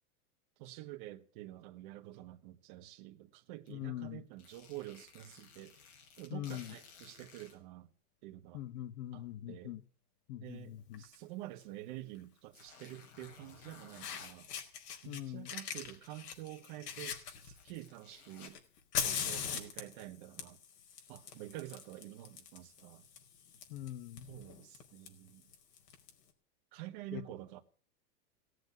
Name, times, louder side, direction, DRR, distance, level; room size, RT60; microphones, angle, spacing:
voice 1, 0.6-5.8 6.1-7.9 8.2-8.6 9.1-9.8 10.4-14.5 15.0-18.6 19.0-20.6 21.1-23.1 24.3-25.4 26.7-27.6, right 15 dB, 30° right, 1.3 m, -48 dB
sound 1, 3.7-3.8 4.3-7.6 8.5-8.6 11.5-11.6 12.5-14.3 16.6-16.7 17.2-18.5, left 6 dB, 50° left, 6.4 m, -57 dB
voice 2, 3.7-4.2 6.3-6.7 8.5-9.8 10.3-11.0 15.0-15.5 23.7-24.3 27.1-27.2, left 13 dB, 30° left, 1.2 m, -42 dB
Fire, 10.9-11.2 12.6-12.7 13.6-13.7 14.0-15.2 15.5-17.9 18.4-26.1, left 7 dB, 75° left, 4.8 m, -42 dB
18.0 x 8.0 x 9.5 m
supercardioid pair, 175°, 47 cm